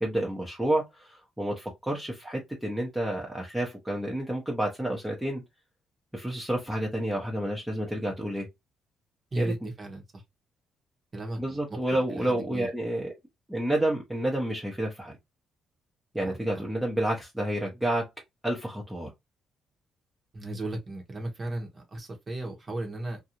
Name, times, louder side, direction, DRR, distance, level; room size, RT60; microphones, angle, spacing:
voice 1, 0.0-5.4 6.1-8.5 9.4-9.7 11.4-13.1 13.5-15.2 16.1-18.1 18.4-19.1, right 1 dB, 5° right, 0.8 m, -30 dB
voice 2, 9.3-10.2 11.1-11.4 11.7-12.7 16.2-16.6 20.3-23.2, right 2 dB, 35° right, 0.9 m, -35 dB
2.5 x 2.3 x 2.8 m
cardioid pair, 90°, 0 cm